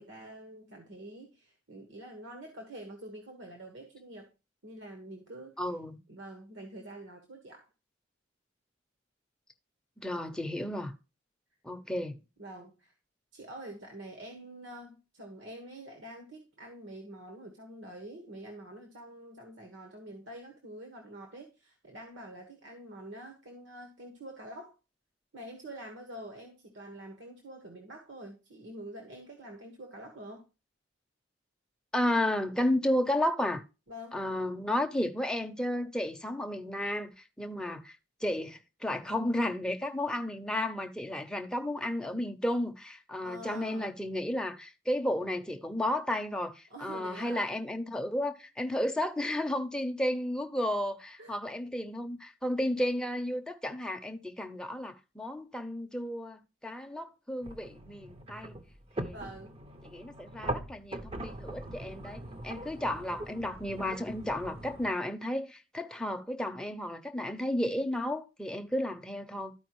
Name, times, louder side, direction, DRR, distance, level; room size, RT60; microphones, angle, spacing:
voice 1, 0.0-4.3 4.6-5.6 6.1-7.7 12.4-12.9 13.3-24.7 25.3-30.5 33.9-34.2 43.2-43.9 46.7-47.6 51.2-51.3 59.1-59.6, right 1 dB, 70° right, 1.4 m, -46 dB
voice 2, 5.6-6.0 10.0-10.9 11.6-12.2 31.9-33.6 34.1-37.1 37.4-38.0 38.2-58.5 59.0-59.2 59.8-69.5, left 1 dB, 5° left, 0.7 m, -33 dB
sound 1, 57.4-64.9, right 1 dB, 30° right, 0.7 m, -41 dB
13.0 x 4.8 x 3.1 m
head